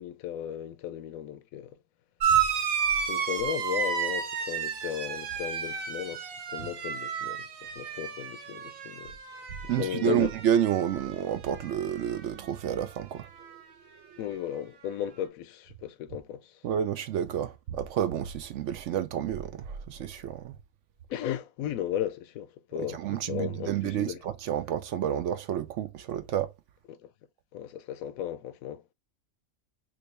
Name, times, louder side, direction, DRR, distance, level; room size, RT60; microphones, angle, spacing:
voice 1, 0.0-1.8 3.1-6.3 6.5-9.1 9.6-10.3 14.2-16.5 21.1-24.2 26.9-27.1 27.5-28.8, left 10 dB, 90° left, 1.0 m, -35 dB
sound 1, 2.2-11.2 11.5-12.3 13.4-13.5, right 7 dB, 85° right, 1.3 m, -32 dB
voice 2, 9.7-13.3 16.6-20.6 22.9-26.5, right 10 dB, 70° right, 0.9 m, -30 dB
3.2 x 3.0 x 3.1 m
omnidirectional pair, 1.4 m